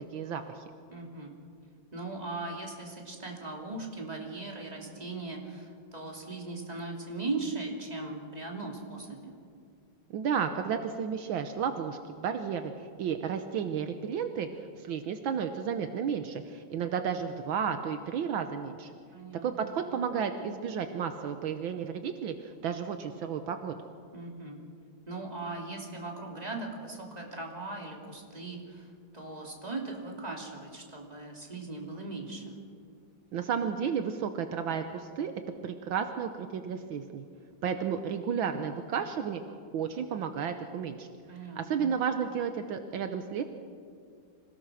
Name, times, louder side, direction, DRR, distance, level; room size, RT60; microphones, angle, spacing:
voice 1, 0.1-0.6 10.1-14.5 14.8-18.9 19.4-23.8 33.3-35.3 35.6-37.2 37.6-41.1 41.6-43.4, right 7 dB, 75° right, 7 dB, 1.6 m, -32 dB
voice 2, 0.9-1.3 1.9-9.3 19.1-19.8 24.1-24.6 25.1-28.9 29.1-32.5 41.3-41.9, right 3 dB, 20° right, -1 dB, 3.0 m, -39 dB
26.5 x 17.5 x 6.3 m, 2.3 s
omnidirectional pair, 2.3 m